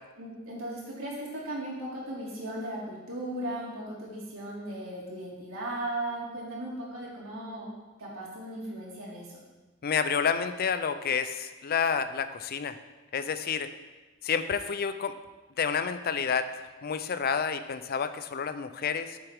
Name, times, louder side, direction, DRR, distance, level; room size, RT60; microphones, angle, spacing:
voice 1, 0.2-7.7 8.0-9.4, right 1 dB, 80° right, -5 dB, 2.6 m, -37 dB
voice 2, 9.8-12.8 13.1-13.7 14.2-15.2 15.6-16.5 16.8-19.2, left 6 dB, 45° left, 11 dB, 0.4 m, -29 dB
9.0 x 7.0 x 3.5 m, 1.2 s
head